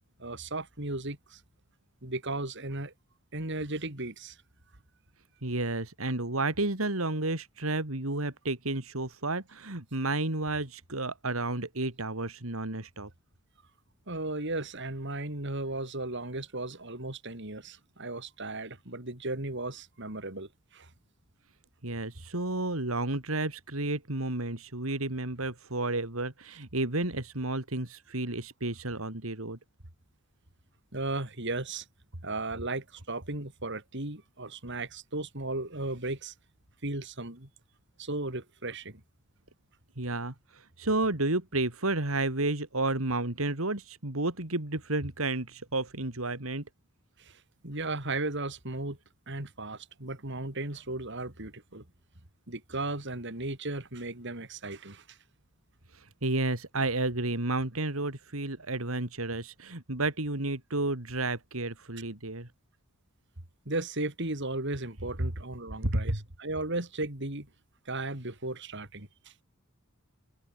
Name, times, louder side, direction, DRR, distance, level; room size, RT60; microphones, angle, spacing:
voice 1, 0.2-1.4 2.0-2.9 3.3-4.4 14.1-20.9 30.9-31.8 32.2-36.3 36.8-37.5 38.0-39.0 47.2-49.0 49.3-51.9 52.5-55.2 63.6-67.5 67.8-69.4, right 2 dB, 60° right, 4.8 m, -36 dB
voice 2, 5.4-13.1 21.8-29.6 40.0-46.6 55.9-62.5 65.8-66.2, right 2 dB, 90° right, 3.3 m, -31 dB
head